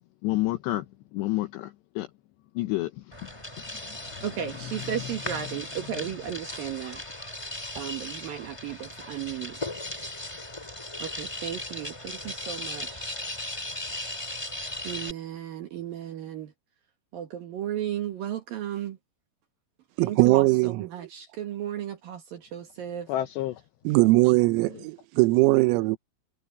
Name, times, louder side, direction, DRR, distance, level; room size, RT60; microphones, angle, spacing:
voice 1, 0.2-0.9 1.1-2.1 2.6-4.2 4.8-4.9 23.1-23.6, left 16 dB, 75° left, 2.7 m, -30 dB
sound 1, 3.1-15.1, left 1 dB, 15° left, 1.2 m, -37 dB
voice 2, 4.2-7.0 7.8-9.6 11.0-13.1 14.8-16.5 17.1-19.0 20.0-23.1, right 10 dB, 65° right, 2.5 m, -35 dB
voice 3, 20.0-20.9 23.8-26.0, right 22 dB, 85° right, 3.4 m, -20 dB
omnidirectional pair, 5.9 m